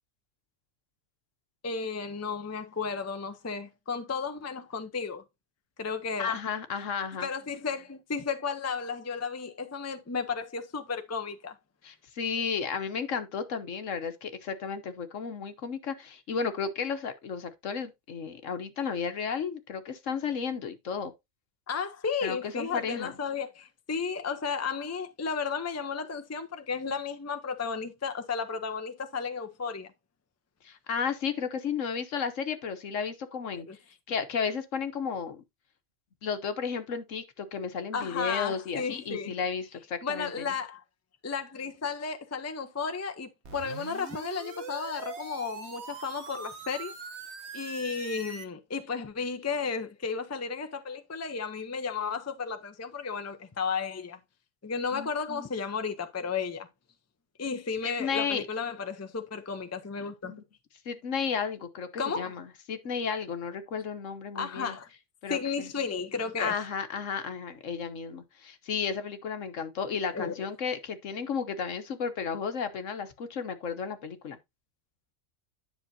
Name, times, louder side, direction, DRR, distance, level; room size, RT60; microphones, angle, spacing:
voice 1, 1.6-5.2 5.8-6.4 7.2-11.5 21.7-29.9 33.7-33.8 37.9-39.4 40.0-40.8 41.2-46.9 47.5-54.2 54.6-56.7 57.4-60.3 62.0-62.3 64.3-64.9 65.3-66.6 70.1-70.3, left 5 dB, 15° left, 0.6 m, -33 dB
voice 2, 6.2-7.3 11.8-21.1 22.2-23.2 30.6-33.7 34.1-35.4 36.2-40.5 54.9-55.5 57.8-58.4 60.2-60.4 60.8-64.8 65.2-65.7 66.4-74.4, left 6 dB, 65° left, 1.3 m, -33 dB
sound 1, 43.4-48.5, right 5 dB, 55° right, 1.3 m, -42 dB
10.0 x 6.0 x 2.7 m
omnidirectional pair, 1.4 m